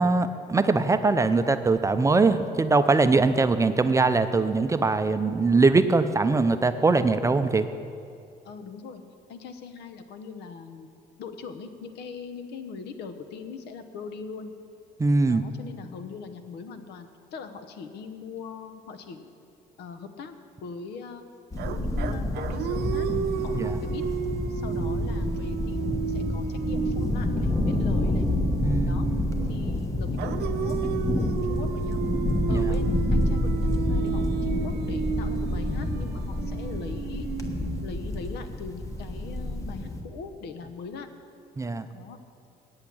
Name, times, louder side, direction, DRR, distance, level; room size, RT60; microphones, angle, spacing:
voice 1, 0.0-7.6 15.0-15.4 23.5-23.8 28.6-29.0 32.5-32.6 41.6-41.9, right 3 dB, 20° right, 10 dB, 0.5 m, -22 dB
voice 2, 8.4-9.0 9.3-10.9 11.2-14.5 15.3-19.3 19.8-20.3 20.6-21.2 21.6-23.1 23.4-24.0 24.5-28.3 28.8-29.1 29.5-30.9 31.4-32.1 32.5-37.3 37.8-41.1 41.9-42.2, left 5 dB, 75° left, 9 dB, 1.0 m, -40 dB
sound 1, 21.5-40.0, left 1 dB, 20° left, 1.2 m, -28 dB
sound 2, 21.6-29.6 30.2-38.3, right 9 dB, 75° right, 0.7 m, -33 dB
8.8 x 8.1 x 8.7 m, 2.4 s
cardioid pair, 110°, 17 cm